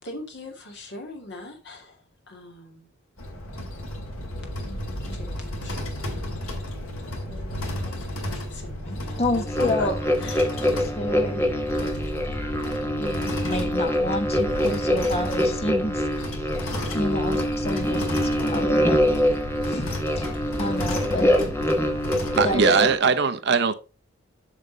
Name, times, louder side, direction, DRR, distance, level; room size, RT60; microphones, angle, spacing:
voice 1, 0.0-2.0 2.3-2.9 5.1-6.4 7.1-9.9 10.2-10.5, left 2 dB, 55° left, 2.3 m, -40 dB
sound 1, 3.2-22.6, left 1 dB, 80° left, 2.3 m, -33 dB
voice 2, 8.9-10.0 10.6-11.9 13.0-16.6 16.9-19.0 19.6-21.3 22.3-22.9, left 1 dB, 30° left, 1.3 m, -30 dB
sound 2, 9.5-23.0, equal, 10° left, 1.1 m, -25 dB
voice 3, 22.4-23.7, right 5 dB, 55° right, 0.7 m, -20 dB
7.2 x 6.5 x 4.0 m
head